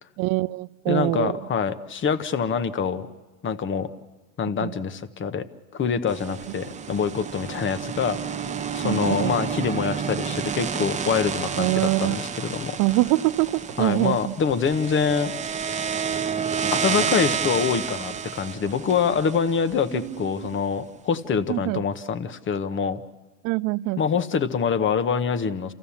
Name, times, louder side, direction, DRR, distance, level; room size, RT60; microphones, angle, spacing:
voice 1, 0.2-1.4 4.6-4.7 8.8-9.4 11.6-12.2 12.8-14.3 19.9-20.5 21.5-21.8 23.4-24.0, right 20 dB, 55° right, 0.6 m, -24 dB
voice 2, 0.9-3.1 3.4-3.9 4.4-5.5 5.7-8.3 8.7-12.8 13.8-15.3 16.7-23.0 24.0-25.7, left 6 dB, 30° left, 1.0 m, -25 dB
sound 1, 6.1-20.3, right 7 dB, 15° right, 0.8 m, -30 dB
28.5 x 15.0 x 7.1 m
supercardioid pair, 100°, 41 cm